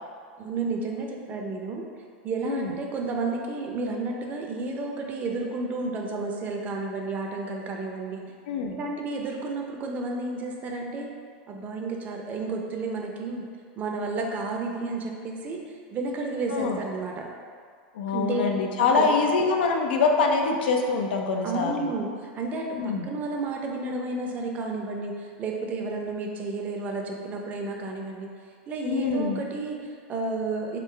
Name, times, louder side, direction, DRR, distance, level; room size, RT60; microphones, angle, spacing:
voice 1, 0.4-1.8 2.2-8.2 8.7-11.1 11.5-13.5 13.8-15.6 15.9-17.3 18.1-18.4 18.8-19.2 21.4-22.1 22.3-28.3 28.7-30.8, right 3 dB, 30° right, 1 dB, 0.6 m, -31 dB
voice 2, 8.5-8.8 16.5-16.8 18.0-21.9 22.8-23.1 28.8-29.4, left 4 dB, 85° left, 2 dB, 0.6 m, -24 dB
3.8 x 3.1 x 4.4 m, 2.1 s
supercardioid pair, 135°, 5 cm